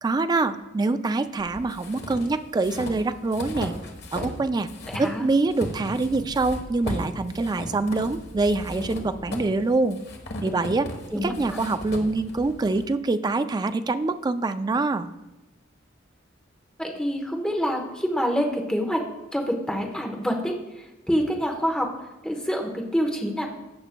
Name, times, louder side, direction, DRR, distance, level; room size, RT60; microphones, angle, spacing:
voice 1, 0.0-3.7 4.1-4.7 5.0-10.0 10.4-15.1, right 3 dB, 20° right, 10 dB, 0.3 m, -25 dB
sound 1, 1.4-4.4 4.7-12.8, left 1 dB, 60° left, 1.2 m, -36 dB
voice 2, 4.9-5.2 11.1-11.6 16.8-19.0 19.3-20.5 21.1-21.9 22.2-23.5, equal, 5° left, 1 dB, 1.0 m, -26 dB
15.5 x 6.1 x 2.2 m, 1.0 s
head